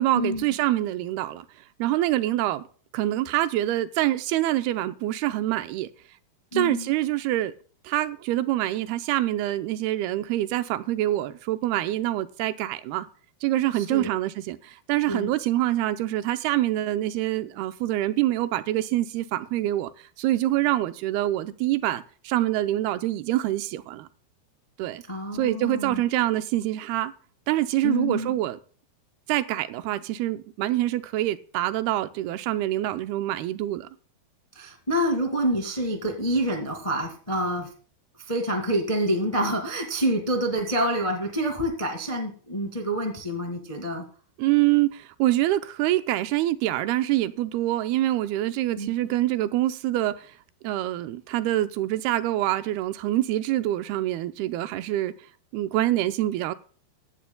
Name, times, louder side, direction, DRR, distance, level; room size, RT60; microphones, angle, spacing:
voice 1, 0.0-1.5 1.8-2.6 2.9-5.9 6.5-7.5 7.8-13.1 13.4-19.9 20.2-24.1 24.8-25.0 25.3-27.1 27.5-28.6 29.3-33.9 44.4-50.3 50.6-55.1 55.5-56.6, right 15 dB, 90° right, 2.7 m, -25 dB
voice 2, 6.5-6.9 13.7-14.1 15.1-15.3 25.1-26.0 27.8-28.4 34.5-37.7 38.3-44.0 48.8-48.9, equal, 25° left, 0.7 m, -27 dB
16.5 x 11.0 x 2.3 m
omnidirectional pair, 4.4 m